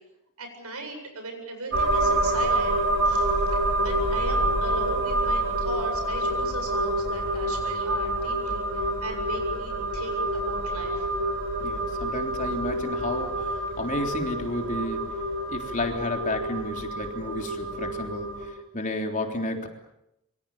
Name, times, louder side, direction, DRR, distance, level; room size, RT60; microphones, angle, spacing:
voice 1, 0.4-2.8 3.0-11.1, right 2 dB, 80° right, 5 dB, 8.0 m, -38 dB
sound 1, 1.7-18.5, right 1 dB, 60° right, 6.9 m, -27 dB
voice 2, 11.6-15.0 15.5-19.7, left 2 dB, 35° left, 3 dB, 3.5 m, -32 dB
26.0 x 24.0 x 7.2 m, 0.83 s
head